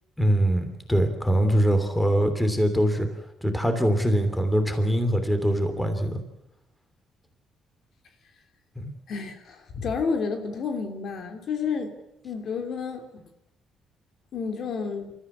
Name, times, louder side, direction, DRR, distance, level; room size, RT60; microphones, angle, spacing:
voice 1, 0.2-3.1 3.4-6.2 8.8-8.9, equal, 5° left, 7 dB, 3.1 m, -23 dB
voice 2, 9.1-12.0 12.2-13.2 14.3-15.1, left 5 dB, 55° left, 5 dB, 2.8 m, -30 dB
27.5 x 14.5 x 8.5 m, 0.86 s
cardioid pair, 130°, 0 cm